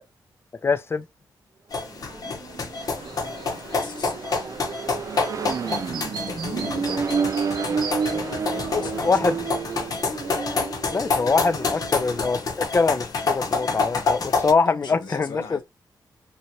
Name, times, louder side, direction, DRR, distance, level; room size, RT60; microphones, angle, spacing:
voice 1, 0.6-1.0 8.7-9.3 10.9-15.6, left 4 dB, 35° left, 0.4 m, -23 dB
sound 1, 1.7-14.5, left 4 dB, 55° left, 0.8 m, -28 dB
Accelerating revving vroom, 1.9-12.4, right 6 dB, 45° right, 0.4 m, -31 dB
Chirp tweet, 2.7-10.7, right 6 dB, 85° right, 0.7 m, -41 dB
voice 2, 3.8-4.1 6.3-9.5 11.9-12.1 14.6-15.6, left 4 dB, 75° left, 1.0 m, -39 dB
2.8 x 2.6 x 2.9 m
cardioid pair, 90°, 8 cm